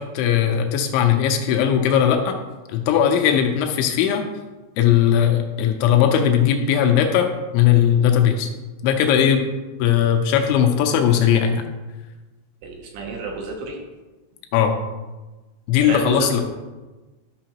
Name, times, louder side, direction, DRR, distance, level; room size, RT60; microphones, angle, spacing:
voice 1, 0.0-2.4 2.7-4.2 4.8-8.5 8.8-9.5 9.8-11.6 14.5-14.7 15.7-16.4, left 9 dB, 80° left, 4 dB, 2.9 m, -18 dB
voice 2, 12.6-13.8 15.8-16.4, right 4 dB, 75° right, 1 dB, 2.8 m, -29 dB
12.0 x 5.6 x 2.9 m, 1.2 s
omnidirectional pair, 5.7 m